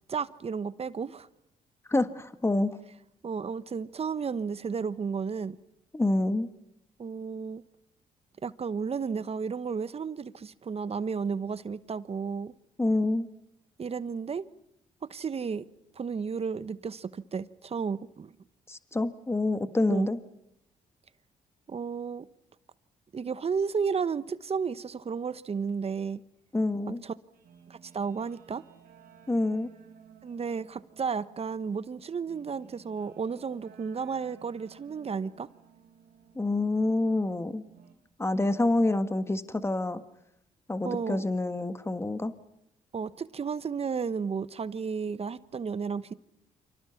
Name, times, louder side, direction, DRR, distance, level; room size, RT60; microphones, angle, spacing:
voice 1, 0.1-1.3 3.2-5.6 7.0-7.6 8.4-12.5 13.8-14.4 15.0-15.6 16.0-18.3 19.9-20.1 21.7-22.3 23.1-26.2 27.0-27.1 27.7-28.6 30.2-35.5 40.8-41.3 42.9-46.1, right 5 dB, 40° right, 1.1 m, -33 dB
voice 2, 1.9-2.8 5.9-6.5 12.8-13.3 18.7-20.2 26.5-27.0 29.3-29.7 36.3-37.6 38.2-40.0 40.7-42.3, left 2 dB, 15° left, 1.6 m, -27 dB
Guitar, 27.3-37.9, right 7 dB, 75° right, 4.6 m, -57 dB
30.0 x 25.5 x 5.9 m
supercardioid pair, 60°, 15 cm